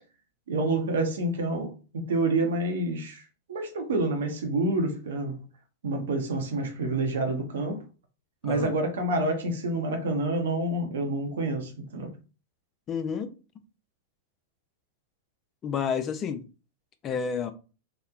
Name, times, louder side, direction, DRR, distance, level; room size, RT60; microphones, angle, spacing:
voice 1, 0.5-5.4 5.8-7.8 8.4-12.1, right 2 dB, 70° right, 0.7 m, -28 dB
voice 2, 12.9-13.3 15.6-16.4 17.0-17.5, left 6 dB, 30° left, 0.3 m, -30 dB
2.8 x 2.0 x 2.3 m
hypercardioid pair, 100°, 0 cm